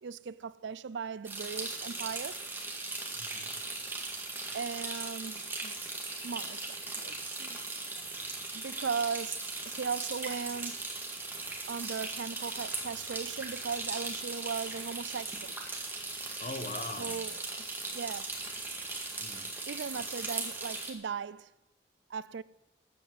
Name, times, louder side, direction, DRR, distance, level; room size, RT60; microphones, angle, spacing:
voice 1, 0.0-2.4 4.5-5.8 6.2-7.6 8.5-10.8 11.7-15.6 17.0-17.4 17.9-18.4 19.7-21.5 22.1-22.4, right 6 dB, 90° right, 0.5 m, -38 dB
sound 1, 1.3-20.9, right 3 dB, 10° right, 1.9 m, -38 dB
voice 2, 3.1-3.6 16.4-17.3 19.2-19.5, left 2 dB, 40° left, 1.0 m, -41 dB
13.5 x 8.5 x 7.5 m
head